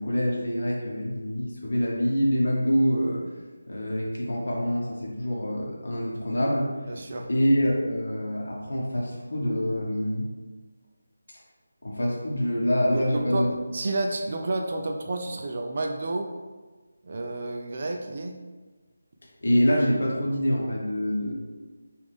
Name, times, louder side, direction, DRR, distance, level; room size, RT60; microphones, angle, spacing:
voice 1, 0.0-3.2 3.7-6.7 7.3-10.3 11.8-13.5 19.4-21.3, equal, 60° left, -2 dB, 1.1 m, -25 dB
voice 2, 6.9-7.3 12.9-16.3 17.0-18.3, right 2 dB, 35° right, 2 dB, 0.3 m, -30 dB
5.0 x 2.5 x 3.4 m, 1.3 s
figure-of-eight pair, 175°, 0 cm